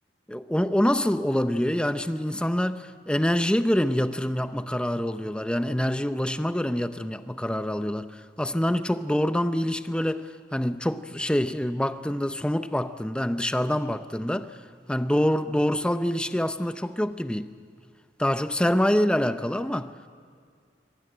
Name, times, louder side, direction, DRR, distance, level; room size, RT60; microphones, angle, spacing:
voice 1, 0.3-14.5 14.9-17.5 18.2-19.9, equal, 5° left, 0.6 m, -26 dB
25.0 x 18.5 x 7.7 m
head